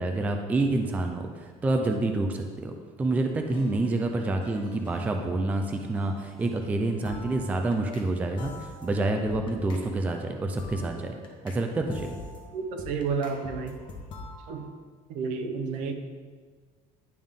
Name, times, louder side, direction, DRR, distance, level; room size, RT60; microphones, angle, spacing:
voice 1, 0.0-2.7 3.0-11.2 11.4-12.1, right 2 dB, 10° right, 4 dB, 0.3 m, -28 dB
sound 1, 3.5-8.1 8.4-11.6 11.9-14.6, left 3 dB, 35° left, 1.0 m, -45 dB
voice 2, 12.5-13.7 14.5-14.6 15.1-15.9, right 5 dB, 65° right, 6 dB, 0.8 m, -31 dB
10.5 x 3.5 x 3.6 m, 1.5 s
cardioid pair, 165°, 14 cm